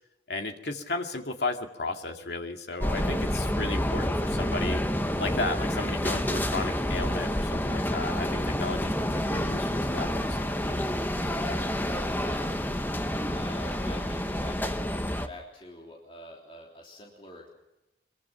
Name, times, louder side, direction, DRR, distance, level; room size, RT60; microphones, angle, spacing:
voice 1, 0.3-4.8 5.2-10.8, left 3 dB, 75° left, 4 dB, 2.2 m, -34 dB
sound 1, 2.8-15.3, equal, 10° left, 1.0 m, -29 dB
voice 2, 11.3-12.6 13.2-17.5, left 1 dB, 30° left, -1 dB, 3.5 m, -46 dB
24.0 x 22.5 x 5.9 m, 0.94 s
head